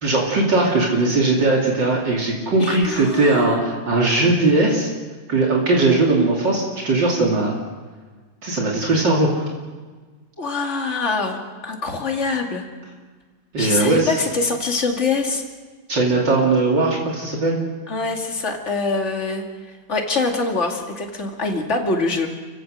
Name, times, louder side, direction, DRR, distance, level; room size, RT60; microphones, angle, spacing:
voice 1, 0.0-4.9 5.3-7.6 8.4-9.5 13.5-14.1 15.9-17.6, right 2 dB, 65° right, -2 dB, 3.4 m, -19 dB
voice 2, 2.6-3.6 10.4-12.7 13.6-15.4 17.9-19.5 19.9-22.3, left 3 dB, 35° left, 2 dB, 2.6 m, -24 dB
30.0 x 16.0 x 6.4 m, 1.4 s
omnidirectional pair, 2.2 m